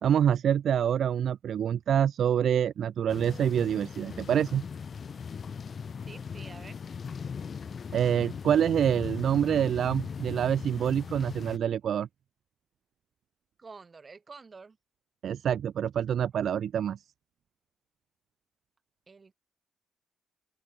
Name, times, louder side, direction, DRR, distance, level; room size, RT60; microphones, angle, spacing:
voice 1, 0.0-4.6 7.9-12.1 15.2-17.0, right 9 dB, 60° right, 0.6 m, -26 dB
sound 1, 3.1-11.6, left 6 dB, 45° left, 0.5 m, -39 dB
voice 2, 6.1-6.8 13.6-14.8 19.1-19.3, right 4 dB, 30° right, 3.8 m, -48 dB
open air
cardioid pair, 90°, 0 cm